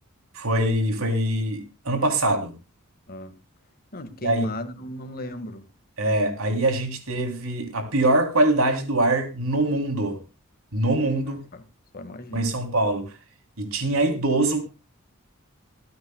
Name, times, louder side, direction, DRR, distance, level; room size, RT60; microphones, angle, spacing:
voice 1, 0.3-2.5 4.2-4.5 6.0-10.2 10.7-11.5 12.3-13.1 13.6-14.6, right 1 dB, 70° right, 3.2 m, -23 dB
voice 2, 3.1-3.4 3.9-5.7 11.5-11.6 11.9-12.5, left 1 dB, 45° left, 1.8 m, -35 dB
26.5 x 9.4 x 2.3 m
head